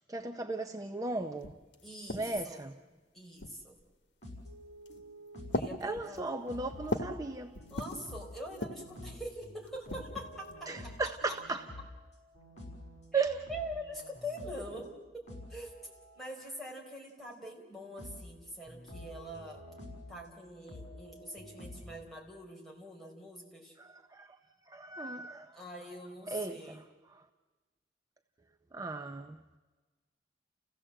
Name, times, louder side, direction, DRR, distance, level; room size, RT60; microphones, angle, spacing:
voice 1, 0.1-1.6 2.1-2.8 5.8-7.6 10.7-11.7 13.1-13.4 23.8-24.4 24.7-25.6 26.3-26.8 27.1-27.2 28.7-29.4, right 3 dB, 20° right, 0.6 m, -36 dB
sound 1, 1.1-1.2 1.4-2.6 3.4-3.9 4.7-5.0 5.5-7.2 7.5-8.1 8.5-9.0 9.7-10.6, left 1 dB, 80° left, 1.3 m, -39 dB
voice 2, 1.8-2.6 3.1-3.8 5.5-6.2 7.7-10.9 13.1-15.2 15.5-19.6 20.1-23.8 25.5-26.8, equal, ahead, 4.4 m, -44 dB
sound 2, 4.2-5.7 6.0-14.9 15.3-16.4 17.3-17.4 18.0-18.3 18.7-20.3 20.7-22.0, left 1 dB, 40° left, 5.9 m, -49 dB
30.0 x 16.0 x 7.7 m
head